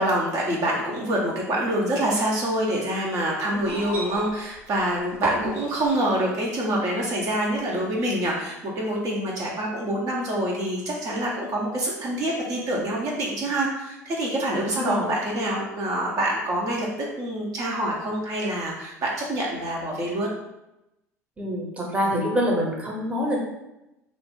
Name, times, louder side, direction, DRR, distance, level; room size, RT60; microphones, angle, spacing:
voice 1, 0.0-16.9 17.2-20.3, right 1 dB, 40° right, -3 dB, 0.7 m, -26 dB
sound 1, 3.5-6.5 7.6-7.7, right 2 dB, 65° right, 1.0 m, -33 dB
voice 2, 14.7-15.1 21.4-23.4, equal, 15° right, -2 dB, 0.9 m, -26 dB
2.6 x 2.4 x 3.6 m, 0.92 s
hypercardioid pair, 70°, 9 cm